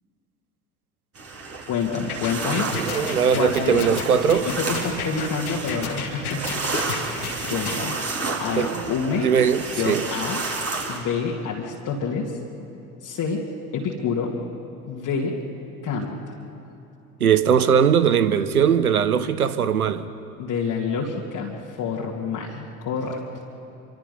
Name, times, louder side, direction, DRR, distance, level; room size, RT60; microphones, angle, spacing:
sound 1, 1.1-11.0, right 3 dB, 35° right, 4.2 m, -31 dB
voice 1, 1.7-2.7 3.3-6.7 7.0-8.0 8.4-9.3 9.8-10.4 10.9-12.4 13.0-14.4 14.9-15.4 15.8-16.4 20.4-23.2, left 5 dB, 45° left, -3 dB, 2.3 m, -28 dB
sound 2, 2.1-7.8, left 6 dB, 80° left, 2.4 m, -32 dB
voice 2, 2.8-4.5 8.6-8.9 9.2-10.0 17.2-20.0, right 7 dB, 85° right, 14 dB, 0.9 m, -20 dB
26.0 x 25.0 x 5.4 m, 2.8 s
figure-of-eight pair, 65°, 43 cm